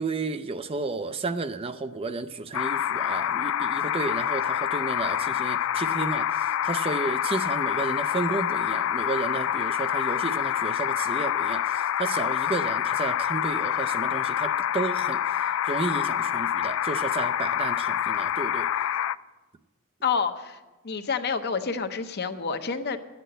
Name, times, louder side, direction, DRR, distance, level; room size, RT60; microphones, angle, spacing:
voice 1, 0.0-18.7, right 3 dB, 25° right, 11 dB, 0.4 m, -32 dB
sound 1, 2.5-19.2, left 10 dB, 65° left, 0.3 m, -27 dB
voice 2, 20.0-20.6 20.8-23.0, left 5 dB, 50° left, 9 dB, 0.8 m, -28 dB
11.0 x 8.3 x 7.8 m, 1.1 s
head